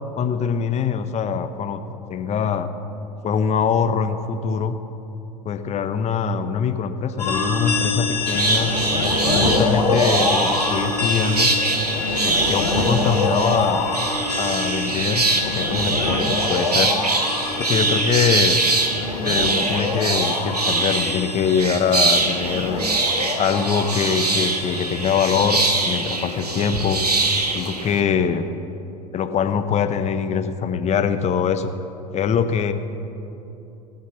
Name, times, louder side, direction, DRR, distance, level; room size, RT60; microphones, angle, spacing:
voice 1, 0.2-1.8 2.1-2.7 3.2-4.8 5.4-8.7 9.3-11.5 12.2-13.9 14.4-16.9 17.6-18.6 19.2-22.9 23.4-27.0 27.5-28.4 29.1-31.7 32.1-32.7, left 7 dB, 35° left, 9 dB, 0.9 m, -23 dB
sound 1, 7.2-25.7, left 3 dB, 90° left, 1.9 m, -25 dB
sound 2, 8.3-28.0, right 3 dB, 90° right, 1.1 m, -23 dB
19.0 x 6.5 x 7.3 m, 2.9 s
figure-of-eight pair, 75°, 20 cm